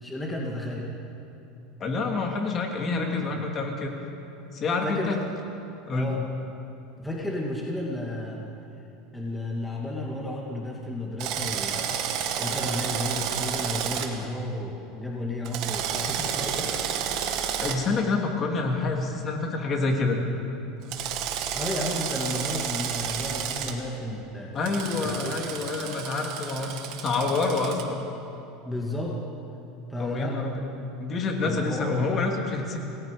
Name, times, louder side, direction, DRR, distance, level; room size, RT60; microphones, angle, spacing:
voice 1, 0.0-0.9 3.0-3.4 4.8-5.3 5.9-6.2 7.0-8.5 9.1-12.0 12.4-16.7 21.5-24.6 25.0-25.4 28.7-29.2 29.9-30.4 31.4-32.1, left 1 dB, 5° left, -3 dB, 2.2 m, -32 dB
voice 2, 1.8-3.9 4.5-5.2 5.9-6.1 17.6-20.2 24.5-28.0 29.9-30.6 31.0-32.8, left 3 dB, 30° left, 1 dB, 2.8 m, -27 dB
Drill, 11.2-14.1 15.5-17.8 20.9-23.7 24.6-27.8, right 8 dB, 55° right, 2.2 m, -31 dB
28.0 x 19.0 x 5.2 m, 2.9 s
supercardioid pair, 145°, 0 cm